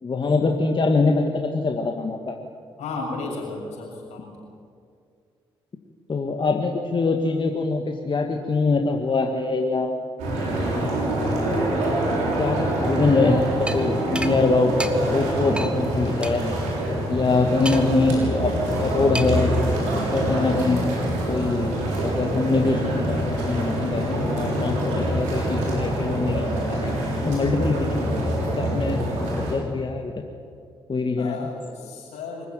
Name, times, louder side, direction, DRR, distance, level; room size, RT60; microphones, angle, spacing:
voice 1, 0.0-2.3 6.1-10.0 10.7-11.6 12.4-14.8 15.1-16.4 17.1-20.8 21.3-26.9 27.2-30.2 30.9-31.5, left 3 dB, 40° left, 3 dB, 2.1 m, -24 dB
voice 2, 2.8-4.4 31.2-32.5, left 3 dB, 70° left, -1 dB, 6.9 m, -33 dB
sound 1, 10.2-29.5, right 1 dB, 80° right, 6.3 m, -25 dB
sound 2, 13.7-13.8 14.2-14.3 14.8-14.9 15.6-15.7 16.2-16.3 17.7-18.0 19.1-19.5, right 1 dB, 10° right, 2.1 m, -30 dB
25.0 x 15.0 x 9.3 m, 2.3 s
hypercardioid pair, 40°, 12 cm